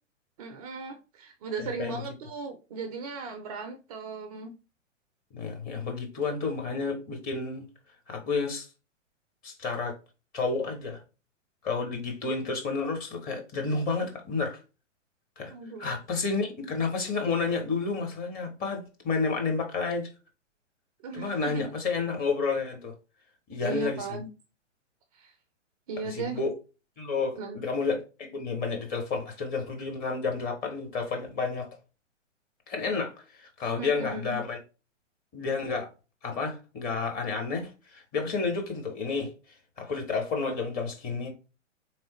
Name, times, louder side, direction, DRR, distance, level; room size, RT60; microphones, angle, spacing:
voice 1, 0.4-4.5 15.5-15.9 21.0-21.7 23.6-24.3 25.1-25.3 25.9-26.4 27.4-27.6 33.8-34.4, right 4 dB, 30° right, 0.5 m, -37 dB
voice 2, 1.6-2.0 5.3-7.7 8.1-8.7 9.4-10.0 10.3-11.0 11.6-14.6 15.4-15.5 15.8-20.1 21.1-22.9 23.5-24.0 26.0-26.5 27.0-31.7 32.7-33.1 33.4-34.6 35.3-35.9 36.2-39.3 39.8-41.3, left 4 dB, 25° left, 0.9 m, -30 dB
3.6 x 3.1 x 3.0 m
figure-of-eight pair, 115°, 37 cm